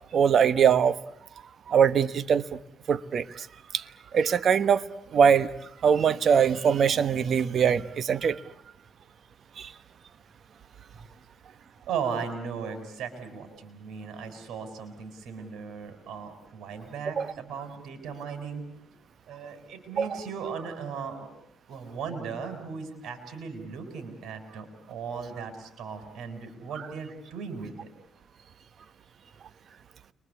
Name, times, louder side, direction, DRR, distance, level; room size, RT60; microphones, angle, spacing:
voice 1, 0.1-1.0 1.7-2.6 2.9-3.5 3.7-3.8 4.1-4.8 5.1-5.5 5.8-8.4 9.6-9.7 17.2-17.3 20.0-20.1, right 7 dB, 55° right, 14 dB, 1.2 m, -22 dB
voice 2, 11.9-18.6 19.3-21.3 21.7-27.9, right 6 dB, 75° right, 8 dB, 6.0 m, -37 dB
29.5 x 23.5 x 8.3 m, 0.72 s
cardioid pair, 90°, 0 cm